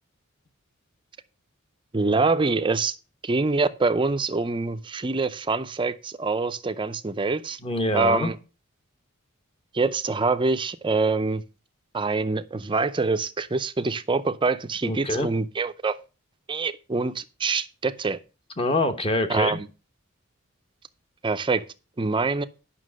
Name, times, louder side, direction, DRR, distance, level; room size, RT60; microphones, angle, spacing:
voice 1, 1.9-3.0 3.2-7.6 7.9-8.4 9.7-11.4 11.9-16.0 16.5-18.2 19.3-19.7 21.2-21.6 22.0-22.4, right 3 dB, 20° right, 0.5 m, -25 dB
voice 2, 7.6-8.3 14.8-15.3 18.6-19.6, left 1 dB, 25° left, 1.1 m, -25 dB
9.5 x 5.9 x 6.3 m
head